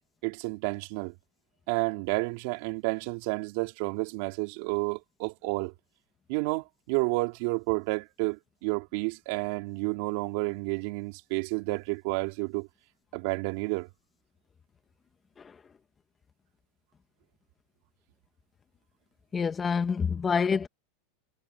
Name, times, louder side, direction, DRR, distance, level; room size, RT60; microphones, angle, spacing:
voice 1, 0.2-1.1 1.7-5.7 6.3-12.7 13.1-13.9, right 26 dB, 60° right, 3.5 m, -30 dB
voice 2, 19.3-20.7, left 6 dB, 20° left, 1.7 m, -27 dB
supercardioid pair, 125°, 0 cm